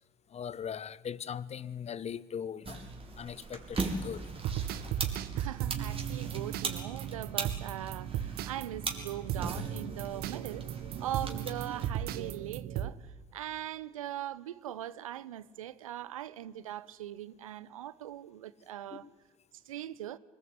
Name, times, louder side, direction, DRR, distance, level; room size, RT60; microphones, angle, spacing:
voice 1, 0.3-2.8 3.2-4.3 18.9-19.1, left 8 dB, 40° left, 1.1 m, -40 dB
sound 1, 2.6-11.9, right 3 dB, 35° right, 5.3 m, -40 dB
sound 2, 4.3-12.9, right 10 dB, 65° right, 1.5 m, -36 dB
voice 2, 5.3-10.7 11.0-13.0 13.3-19.1 19.7-20.2, right 12 dB, 85° right, 0.8 m, -40 dB
25.5 x 20.5 x 9.9 m
hypercardioid pair, 60°, 17 cm